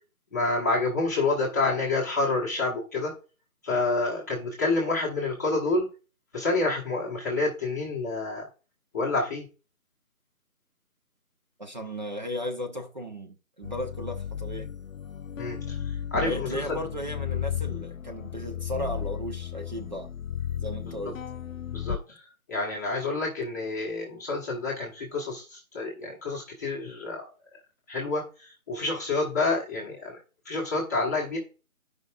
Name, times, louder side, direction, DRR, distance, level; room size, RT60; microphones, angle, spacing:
voice 1, 0.3-3.1 3.6-5.9 6.3-8.5 8.9-9.4 15.4-15.8 16.1-16.6 21.7-22.2 22.5-27.3 27.9-30.2 30.4-31.4, left 3 dB, 10° left, 1.2 m, -28 dB
voice 2, 11.6-14.7 16.2-20.1 20.6-21.2, equal, 30° right, 0.9 m, -35 dB
sound 1, 13.6-22.0, left 9 dB, 65° left, 0.5 m, -34 dB
14.5 x 5.2 x 2.4 m
figure-of-eight pair, 160°, 42 cm